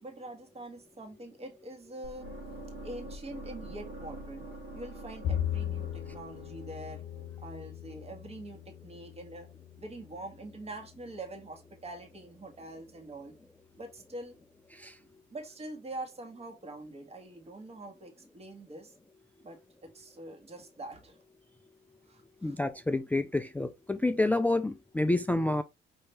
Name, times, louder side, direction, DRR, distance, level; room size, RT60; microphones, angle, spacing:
voice 1, 0.0-2.3 2.8-4.5 4.7-7.0 7.4-9.5 9.8-13.4 13.8-14.4 15.0-18.9 19.4-21.2 22.0-22.6, right 2 dB, 30° right, 1.4 m, -44 dB
sound 1, 2.0-8.1, right 1 dB, 85° right, 1.6 m, -46 dB
Bowed string instrument, 5.2-11.6, left 10 dB, 65° left, 0.8 m, -39 dB
voice 2, 22.4-25.6, left 2 dB, 10° left, 0.3 m, -28 dB
5.5 x 2.9 x 3.1 m
cardioid pair, 90°, 20 cm